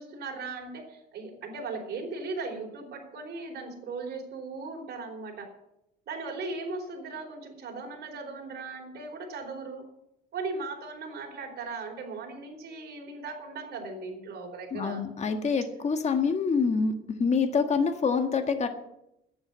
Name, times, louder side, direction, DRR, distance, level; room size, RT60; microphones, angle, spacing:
voice 1, 0.0-5.5 6.1-9.9 10.3-15.0, right 3 dB, 55° right, 0 dB, 4.3 m, -38 dB
voice 2, 14.7-16.9 17.2-18.7, left 5 dB, 35° left, 6 dB, 1.6 m, -26 dB
10.0 x 8.9 x 9.4 m, 0.83 s
cardioid pair, 100°, 20 cm